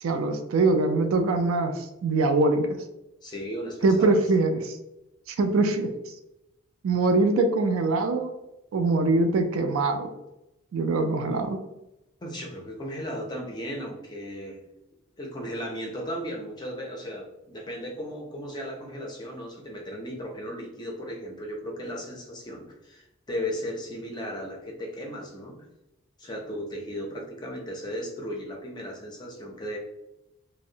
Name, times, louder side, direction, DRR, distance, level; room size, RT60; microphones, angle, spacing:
voice 1, 0.0-2.7 3.8-4.8 5.3-5.9 6.8-8.3 8.7-10.1 10.7-11.6, right 3 dB, 75° right, 6 dB, 0.3 m, -23 dB
voice 2, 3.2-4.2 12.2-14.6 15.2-25.6 26.2-29.8, equal, 20° left, 0 dB, 0.4 m, -36 dB
2.6 x 2.0 x 2.6 m, 0.89 s
head